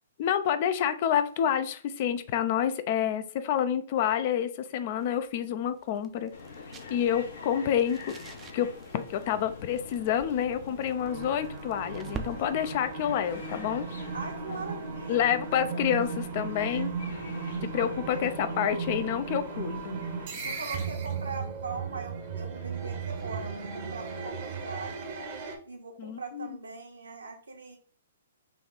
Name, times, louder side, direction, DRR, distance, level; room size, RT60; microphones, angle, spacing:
voice 1, 0.2-6.3 6.9-8.1 8.5-13.9 15.1-16.9 17.6-20.0 26.0-26.6, left 9 dB, 45° left, 12 dB, 0.4 m, -28 dB
sound 1, 4.8-15.4, right 6 dB, 20° right, 0.4 m, -49 dB
sound 2, 6.3-20.9, left 3 dB, 70° left, 1.0 m, -45 dB
sound 3, 11.0-25.6, right 5 dB, 45° right, 0.8 m, -36 dB
voice 2, 14.1-15.3 17.7-17.9 20.4-25.2 25.7-27.8, right 4 dB, 85° right, 2 dB, 1.1 m, -40 dB
3.4 x 2.3 x 3.9 m, 0.43 s
hypercardioid pair, 130°, 0 cm